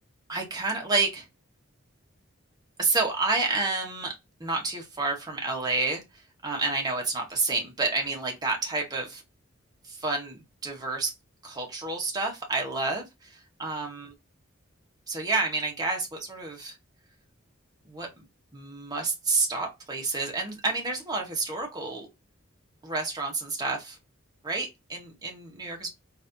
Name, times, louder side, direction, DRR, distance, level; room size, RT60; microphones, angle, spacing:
voice 1, 0.3-1.2 2.8-4.1 4.4-6.0 6.4-9.2 9.9-11.1 11.4-14.1 15.1-16.8 17.9-18.1 18.5-22.1 22.8-24.0 24.4-25.9, right 3 dB, 20° right, 1.1 m, -29 dB
4.1 x 2.6 x 2.5 m
head